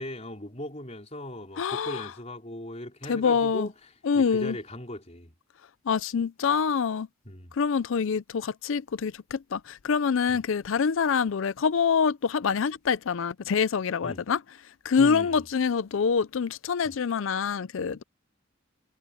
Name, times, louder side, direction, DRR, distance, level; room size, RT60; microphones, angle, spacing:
voice 1, 0.0-5.3 7.2-7.5 10.3-10.4 14.0-14.2 15.0-15.5 16.8-17.0, left 1 dB, 30° left, 4.6 m, -38 dB
voice 2, 1.6-2.1 3.1-3.7 4.0-4.6 5.9-7.1 7.6-14.4 14.8-18.0, left 6 dB, 70° left, 0.4 m, -25 dB
head